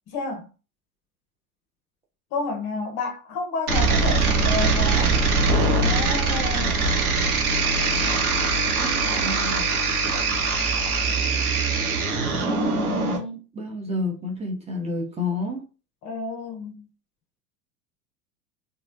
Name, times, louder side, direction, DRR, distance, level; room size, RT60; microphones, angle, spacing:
voice 1, 0.1-0.5 2.3-5.1 5.7-6.9 16.0-16.9, left 3 dB, 40° left, 0.8 m, -30 dB
sound 1, 3.7-13.2, right 3 dB, 80° right, 0.9 m, -22 dB
voice 2, 8.8-9.7 12.5-15.6, left 2 dB, 15° right, 0.8 m, -30 dB
3.1 x 2.2 x 2.6 m
figure-of-eight pair, 85°, 43 cm